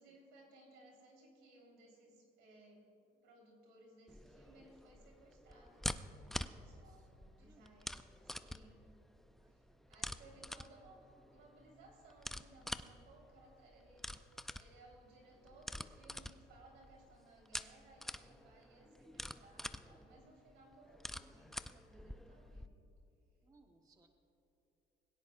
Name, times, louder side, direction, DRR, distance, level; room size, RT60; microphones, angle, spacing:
voice 1, 0.0-8.8 9.5-22.8, right 2 dB, 85° right, 0 dB, 3.8 m, -62 dB
sound 1, 4.1-22.7, left 1 dB, ahead, 0.3 m, -47 dB
voice 2, 6.7-7.7 9.2-9.9 23.4-24.1, right 3 dB, 20° right, 3 dB, 1.1 m, -70 dB
21.0 x 17.0 x 2.5 m, 3.0 s
cardioid pair, 110°, 17 cm